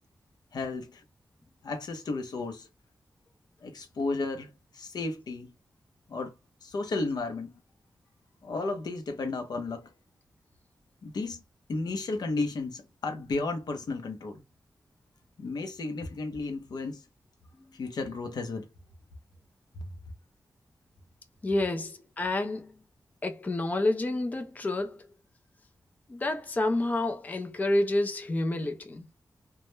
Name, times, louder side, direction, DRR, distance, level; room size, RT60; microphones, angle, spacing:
voice 1, 0.5-1.0 1.6-2.7 3.6-5.5 6.1-6.3 6.6-7.5 8.4-9.9 11.0-11.4 11.7-14.4 15.4-17.0 17.7-18.7, left 3 dB, 80° left, 0.6 m, -33 dB
voice 2, 21.4-22.7 23.2-25.0 26.1-29.1, left 2 dB, 25° left, 0.3 m, -29 dB
2.2 x 2.1 x 3.0 m
wide cardioid pair, 140°, 7 cm